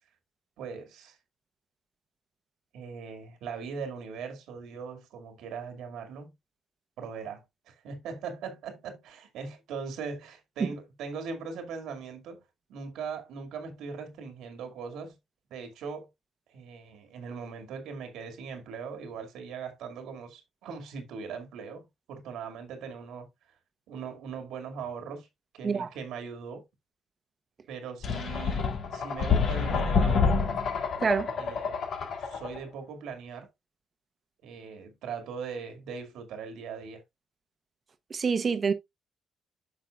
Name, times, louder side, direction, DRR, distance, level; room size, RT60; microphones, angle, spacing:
voice 1, 0.6-1.2 2.7-6.3 7.0-12.4 12.7-15.2 15.5-16.1 16.5-23.3 23.9-25.3 25.5-26.6 27.7-30.4 31.4-31.8 32.2-33.5 34.4-37.0, right 5 dB, 85° right, 2.1 m, -40 dB
sound 1, 28.0-32.6, left 5 dB, 65° left, 2.0 m, -27 dB
voice 2, 31.0-31.3 38.1-38.7, right 5 dB, 40° right, 1.0 m, -26 dB
9.5 x 5.7 x 2.4 m
cardioid pair, 90°, 0 cm